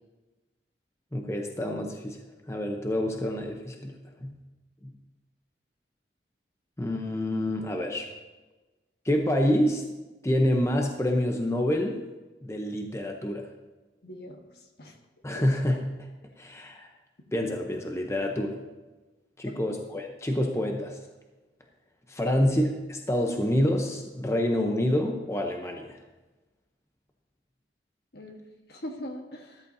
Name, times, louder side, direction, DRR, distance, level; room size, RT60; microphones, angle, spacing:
voice 1, 1.1-2.2 2.5-4.4 4.8-4.9 6.8-8.1 9.0-9.8 10.2-12.0 12.4-13.5 15.2-15.9 16.4-16.9 17.3-18.6 19.4-21.0 22.1-26.0, left 1 dB, 15° left, 2 dB, 0.8 m, -27 dB
voice 2, 14.0-14.4 14.8-15.0 15.3-15.4 19.4-19.6 22.2-22.4 28.1-28.4 28.7-29.6, left 1 dB, 65° left, 3 dB, 1.4 m, -40 dB
14.0 x 13.0 x 2.8 m, 1.2 s
head